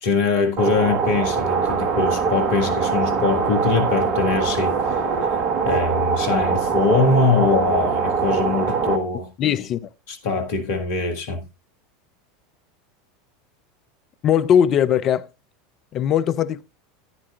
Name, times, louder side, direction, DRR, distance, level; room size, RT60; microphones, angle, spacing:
voice 1, 0.0-9.3 10.1-11.4, left 4 dB, 60° left, 1.7 m, -22 dB
sound 1, 0.6-9.0, right 5 dB, 45° right, 1.5 m, -22 dB
voice 2, 9.4-9.8 14.2-15.3 15.9-16.6, left 9 dB, 40° left, 0.6 m, -19 dB
14.5 x 9.8 x 2.4 m
figure-of-eight pair, 80°, 0 cm